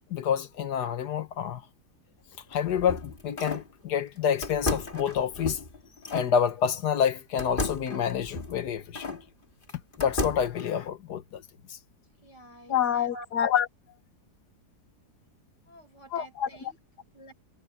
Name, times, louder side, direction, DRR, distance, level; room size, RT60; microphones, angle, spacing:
voice 1, 0.1-1.6 2.5-5.6 6.1-9.2 10.0-11.4 11.7-11.8 12.7-13.7 16.1-16.7, left 8 dB, 70° left, 1.7 m, -28 dB
sound 1, 2.3-3.7 4.4-6.3 7.4-9.2 9.7-10.6, left 3 dB, 30° left, 2.5 m, -34 dB
voice 2, 12.2-13.2 15.7-16.8 17.1-17.4, equal, 90° left, 8.2 m, -48 dB
omnidirectional pair, 1.8 m